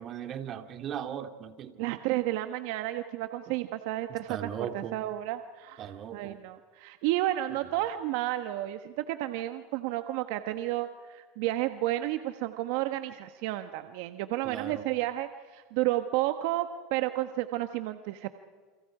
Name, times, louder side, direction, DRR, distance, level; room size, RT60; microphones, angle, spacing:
voice 1, 0.0-2.0 3.5-3.6 4.1-5.0 5.8-6.4 14.4-14.9, right 9 dB, 40° right, 7 dB, 2.2 m, -38 dB
voice 2, 1.8-18.3, right 15 dB, 70° right, 8 dB, 1.2 m, -32 dB
29.5 x 29.5 x 4.9 m, 1.5 s
supercardioid pair, 110°, 0 cm